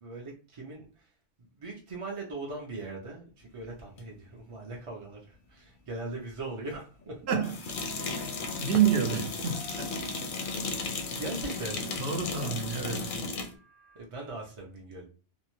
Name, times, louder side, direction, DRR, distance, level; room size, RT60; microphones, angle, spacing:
voice 1, 0.0-1.1 1.4-7.2 11.0-12.0 14.0-15.0, right 2 dB, 45° right, 0.4 m, -40 dB
sound 1, 4.0-4.1 7.4-13.5, left 4 dB, 60° left, 0.6 m, -35 dB
voice 2, 7.3-7.6 8.2-8.3 8.6-9.9 12.0-13.2, right 8 dB, 70° right, 0.8 m, -28 dB
sound 2, 7.9-14.0, right 4 dB, 10° right, 0.8 m, -51 dB
2.7 x 2.1 x 2.9 m
omnidirectional pair, 1.2 m